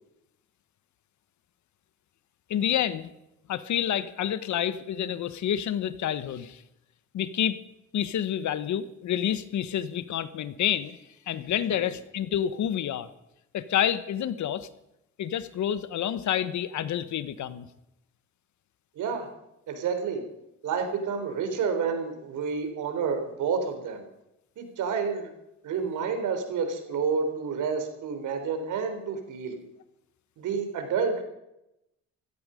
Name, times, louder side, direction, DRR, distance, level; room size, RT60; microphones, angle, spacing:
voice 1, 2.5-3.1 3.5-6.6 7.1-7.6 7.9-11.0 11.3-13.1 13.5-14.7 15.2-17.6, left 10 dB, 70° left, 14 dB, 1.3 m, -28 dB
voice 2, 19.0-19.3 19.7-20.2 20.6-24.0 24.6-25.3 25.6-29.6 30.4-31.2, right 5 dB, 80° right, 6 dB, 3.8 m, -29 dB
16.0 x 15.5 x 5.2 m, 0.85 s
cardioid pair, 90°, 30 cm